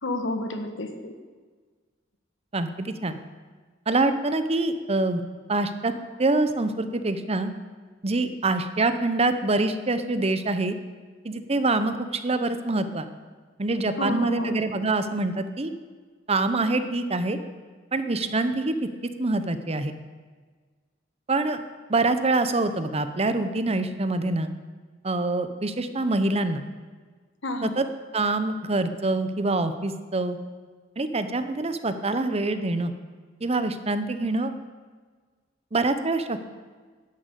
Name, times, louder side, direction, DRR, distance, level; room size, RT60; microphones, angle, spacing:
voice 1, 0.0-1.1 14.0-14.6 27.4-27.8, left 1 dB, 75° left, 6 dB, 1.6 m, -30 dB
voice 2, 2.5-3.2 3.9-5.2 5.5-5.9 6.2-7.5 8.0-10.8 11.2-13.1 13.6-15.7 16.3-17.4 17.9-18.7 19.2-19.9 21.3-21.6 21.9-24.5 25.0-26.6 27.6-27.8 28.1-30.4 31.0-32.9 33.4-34.5 35.7-36.4, right 2 dB, 35° right, 10 dB, 0.9 m, -25 dB
11.0 x 10.0 x 8.3 m, 1.5 s
head